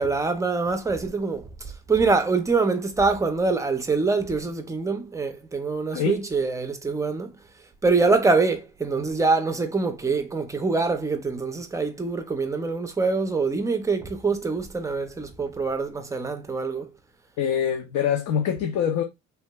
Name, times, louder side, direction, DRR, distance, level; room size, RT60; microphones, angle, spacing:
voice 1, 0.0-7.3 7.8-16.9, right 4 dB, 10° right, 0.4 m, -24 dB
voice 2, 17.4-19.0, left 8 dB, 75° left, 0.6 m, -24 dB
3.3 x 2.8 x 2.2 m
cardioid pair, 140°, 30 cm